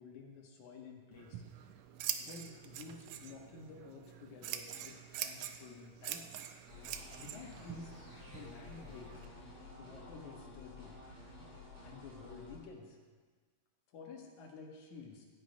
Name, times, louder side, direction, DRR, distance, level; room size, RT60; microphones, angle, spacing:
voice 1, 0.0-1.4 2.2-6.3 7.2-7.9 8.3-9.3 9.8-11.0 11.8-13.0 13.9-15.3, left 4 dB, 65° left, 0 dB, 2.7 m, -51 dB
Scissors, 1.1-9.2, right 10 dB, 85° right, 1.6 m, -45 dB
sound 1, 6.7-12.6, left 3 dB, 50° right, 5.8 m, -52 dB
13.5 x 8.9 x 5.2 m, 1.5 s
omnidirectional pair, 4.0 m